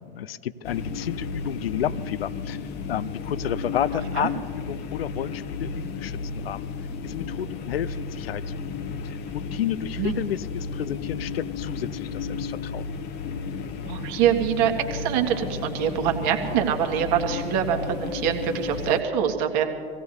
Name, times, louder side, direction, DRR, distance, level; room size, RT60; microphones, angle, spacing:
voice 1, 0.0-2.6 2.9-6.7 7.0-8.6 9.0-12.9, left 10 dB, 70° left, 18 dB, 0.6 m, -31 dB
sound 1, 0.6-19.0, left 5 dB, 35° left, 0.9 m, -33 dB
voice 2, 13.8-19.6, right 9 dB, 50° right, 4 dB, 1.8 m, -24 dB
25.5 x 17.0 x 2.8 m, 2.3 s
figure-of-eight pair, 90°, 31 cm